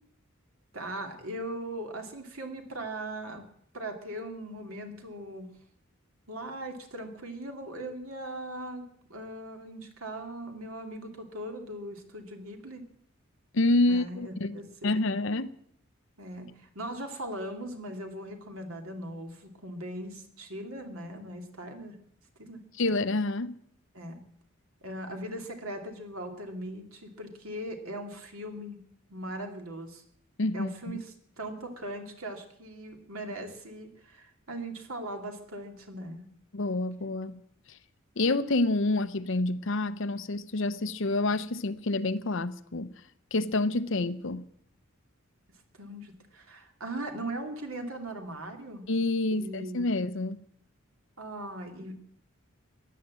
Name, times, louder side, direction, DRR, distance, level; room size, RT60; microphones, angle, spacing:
voice 1, 0.7-3.4 3.7-5.5 6.3-12.8 13.9-15.2 16.2-22.0 22.4-22.6 23.9-24.2 24.8-28.8 29.1-30.0 30.5-36.3 45.7-48.8 49.3-49.8 51.2-52.0, right 1 dB, 85° right, 2.7 m, -39 dB
voice 2, 13.5-15.5 22.8-23.6 30.4-31.0 36.5-37.4 38.2-42.9 43.3-44.4 48.9-50.4, left 2 dB, 65° left, 0.8 m, -28 dB
16.0 x 10.5 x 7.7 m
head